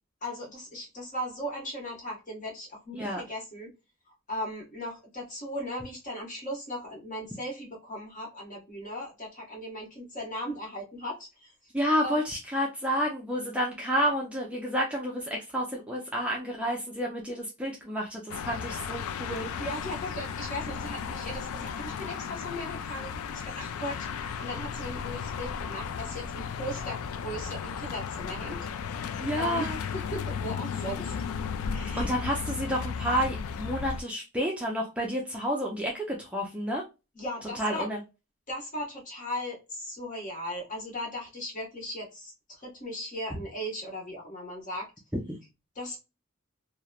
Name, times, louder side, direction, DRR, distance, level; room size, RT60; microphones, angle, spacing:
voice 1, 0.2-3.7 4.3-11.5 12.0-12.2 19.6-31.1 31.7-32.1 37.1-37.9 38.5-44.9 45.7-46.0, equal, 35° left, 1.0 m, -38 dB
voice 2, 11.7-19.5 29.2-29.8 32.0-36.8 37.6-38.0, equal, 5° right, 0.4 m, -30 dB
sound 1, 18.3-34.0, left 6 dB, 80° left, 0.3 m, -35 dB
2.9 x 2.0 x 2.2 m
head